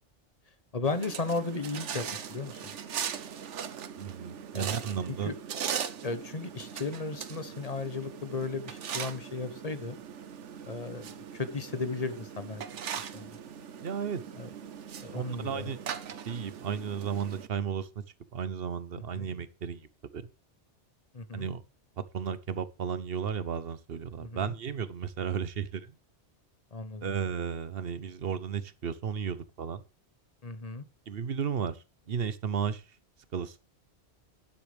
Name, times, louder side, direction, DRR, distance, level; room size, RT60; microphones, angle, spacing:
voice 1, 0.7-2.7 4.5-4.7 5.1-5.3 6.0-10.0 10.7-12.6 13.0-13.3 14.4-14.5 15.0-15.7 19.1-19.3 21.1-21.5 24.2-24.5 26.7-27.1 30.4-30.8, left 3 dB, 35° left, 1.1 m, -35 dB
sound 1, 0.8-17.5, right 8 dB, 90° right, 1.2 m, -40 dB
voice 2, 4.0-5.3 13.8-14.2 15.1-15.8 16.3-17.9 18.3-19.9 20.1-20.2 21.3-21.6 22.0-25.9 27.0-29.8 31.1-32.8 33.3-33.6, right 7 dB, 60° right, 1.1 m, -34 dB
12.0 x 9.9 x 3.4 m
omnidirectional pair, 1.2 m